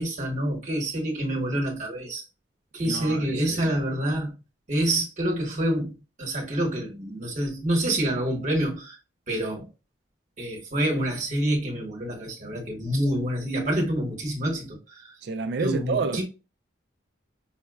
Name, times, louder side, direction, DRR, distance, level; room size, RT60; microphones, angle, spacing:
voice 1, 0.0-2.2 2.7-4.3 4.7-9.0 9.3-9.7 10.4-15.1 15.6-16.2, right 1 dB, 40° right, 1.0 m, -27 dB
voice 2, 2.8-3.6 15.2-16.2, right 4 dB, 60° right, 0.3 m, -29 dB
5.5 x 2.2 x 2.2 m
head